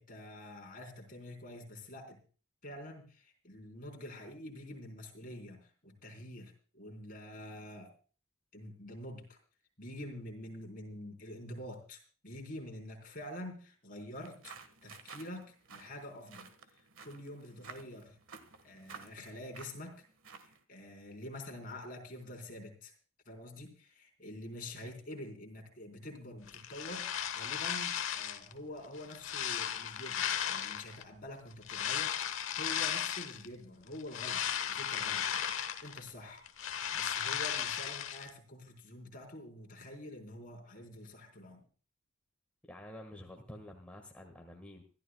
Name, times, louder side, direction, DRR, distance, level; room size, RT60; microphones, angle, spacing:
voice 1, 0.0-2.2 2.6-7.9 8.5-9.4 9.8-16.5 16.7-18.2 18.6-20.0 20.4-22.9 23.3-36.4 36.9-41.7, left 1 dB, 40° left, 2 dB, 3.9 m, -47 dB
sound 1, 14.2-20.6, right 5 dB, 70° right, 1.5 m, -53 dB
sound 2, 26.5-28.5 28.9-31.0 31.6-33.5 33.9-36.1 36.4-38.3, left 9 dB, 70° left, 1.1 m, -35 dB
voice 2, 42.7-44.8, left 1 dB, 5° left, 1 dB, 1.5 m, -49 dB
25.5 x 13.0 x 2.2 m, 0.38 s
head